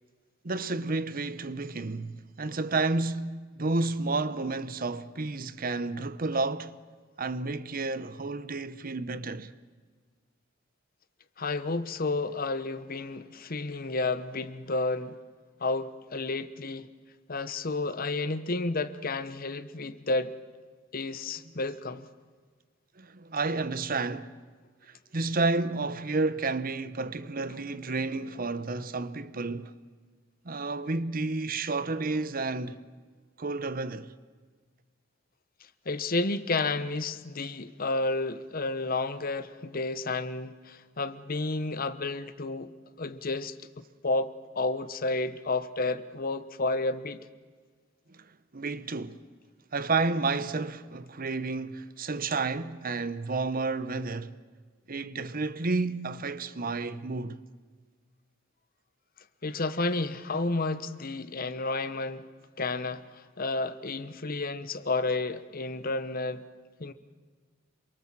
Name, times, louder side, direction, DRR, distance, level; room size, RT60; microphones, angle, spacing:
voice 1, 0.4-6.8 7.2-9.5 23.0-24.4 25.1-29.7 30.4-32.8 33.4-34.1 48.1-48.2 48.5-49.2 49.7-54.3 54.9-57.4, right 3 dB, 45° right, 0.9 m, -31 dB
voice 2, 11.4-15.2 15.6-16.9 17.3-20.3 20.9-22.1 35.8-42.7 43.0-47.3 59.4-62.3 62.6-66.5 66.8-66.9, left 3 dB, 45° left, 1.0 m, -31 dB
27.5 x 23.0 x 7.5 m
head